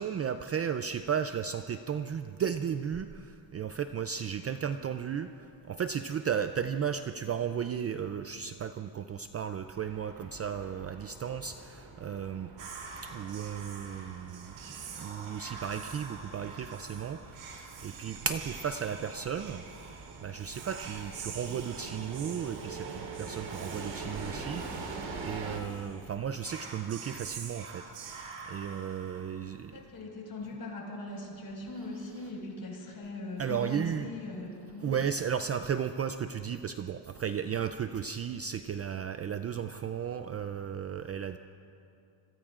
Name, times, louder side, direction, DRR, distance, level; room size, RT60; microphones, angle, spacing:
voice 1, 0.0-12.5 13.0-14.5 15.0-19.9 20.2-27.9 28.5-29.8 33.4-34.1 34.8-41.4, right 8 dB, 35° right, 9 dB, 0.4 m, -34 dB
sound 1, 9.7-25.6, right 3 dB, 70° right, 3.8 m, -45 dB
Whispering, 12.6-29.7, right 5 dB, 90° right, 2.2 m, -46 dB
voice 2, 29.5-35.0, left 2 dB, 45° left, -1 dB, 5.2 m, -40 dB
26.5 x 21.5 x 2.5 m, 2.5 s
cardioid pair, 115°, 47 cm